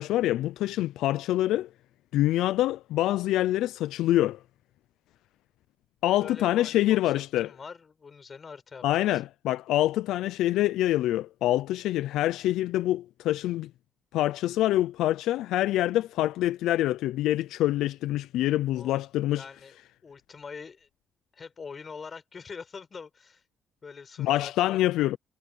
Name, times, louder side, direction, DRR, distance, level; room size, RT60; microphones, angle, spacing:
voice 1, 0.0-1.7 2.1-4.4 6.0-7.5 8.8-13.7 14.1-19.4 24.2-25.2, left 14 dB, 85° left, 0.4 m, -25 dB
voice 2, 6.2-8.8 9.1-9.2 18.7-19.0 19.3-20.9 21.3-23.4 23.8-24.8, left 5 dB, 40° left, 6.5 m, -44 dB
cardioid pair, 80°, 0 cm